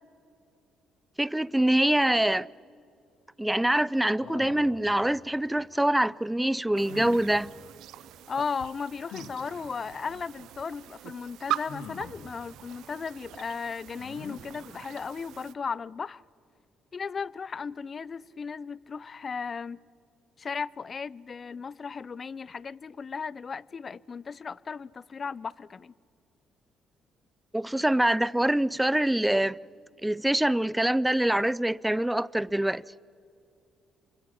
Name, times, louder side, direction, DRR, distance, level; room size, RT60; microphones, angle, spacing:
voice 1, 1.2-2.5 3.4-7.5 27.5-29.6 30.0-32.8, right 1 dB, 10° right, 0.5 m, -25 dB
sound 1, 4.2-4.8 6.9-7.3 9.1-9.3 11.7-12.2 14.0-14.4, left 5 dB, 85° left, 2.3 m, -42 dB
sound 2, 6.7-15.5, right 13 dB, 75° right, 0.5 m, -41 dB
voice 2, 8.3-16.2 16.9-19.8 20.4-25.9, left 5 dB, 45° left, 0.5 m, -36 dB
28.5 x 25.0 x 5.9 m
supercardioid pair, 55°, 0 cm